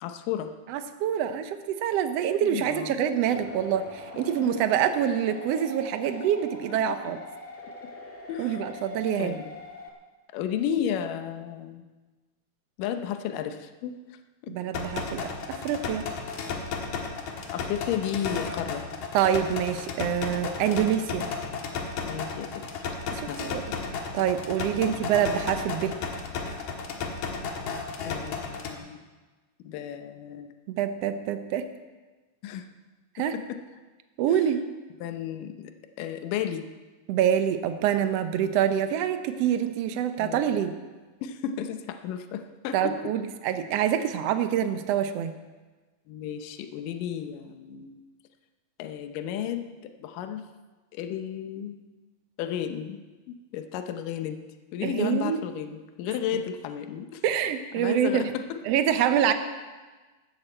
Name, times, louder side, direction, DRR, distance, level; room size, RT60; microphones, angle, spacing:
voice 1, 0.0-0.5 2.4-3.0 4.6-4.7 6.1-6.2 7.0-7.1 8.3-8.6 9.2-9.5 10.3-11.9 12.8-14.0 14.4-14.6 17.5-18.8 20.6-20.9 22.0-22.6 23.3-23.4 24.7-25.0 28.0-29.0 29.6-30.5 32.4-32.7 33.2-33.6 35.0-36.6 40.2-40.5 41.2-42.9 46.1-48.0 48.8-50.5 50.9-51.8 52.4-53.0 53.3-54.4 54.7-57.2 57.8-58.6, left 9 dB, 80° left, 7 dB, 2.4 m, -33 dB
voice 2, 0.7-7.2 8.4-9.4 14.5-15.2 15.5-16.1 19.1-21.2 23.1-23.6 24.1-26.0 30.7-31.6 33.1-33.3 34.2-34.6 37.1-40.7 42.7-45.3 54.8-55.4 57.2-58.2 58.6-59.3, right 9 dB, 80° right, 9 dB, 1.4 m, -26 dB
sound 1, 3.2-9.9, left 2 dB, 10° left, 0.7 m, -43 dB
sound 2, 14.7-28.7, left 5 dB, 65° left, 2.6 m, -34 dB
16.5 x 13.0 x 4.5 m, 1.3 s
omnidirectional pair, 3.8 m